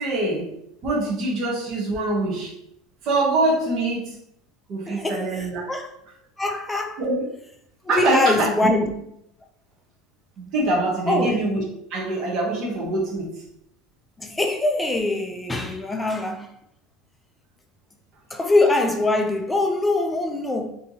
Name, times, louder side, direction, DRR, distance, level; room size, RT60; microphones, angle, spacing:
voice 1, 0.0-2.5 3.0-4.2 4.7-5.6 7.0-7.3 7.9-8.5 10.4-11.6 11.9-13.4, right 2 dB, 40° right, 0.9 m, -24 dB
voice 2, 4.9-5.2 5.7-5.9 6.4-7.0 7.8-8.9 11.1-11.4 14.2-16.5 18.3-20.7, left 2 dB, 10° left, 0.3 m, -23 dB
4.3 x 2.7 x 2.7 m
cardioid pair, 160°, 0 cm